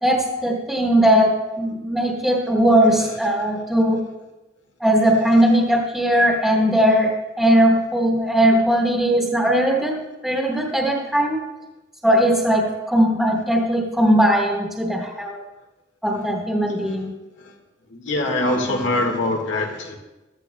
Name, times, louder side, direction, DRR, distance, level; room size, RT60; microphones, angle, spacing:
voice 1, 0.0-4.0 4.8-11.4 12.0-15.4 16.0-17.2, equal, ahead, -3 dB, 1.3 m, -19 dB
voice 2, 17.9-20.0, left 2 dB, 85° left, 2 dB, 1.7 m, -23 dB
15.0 x 12.5 x 2.2 m, 1.1 s
head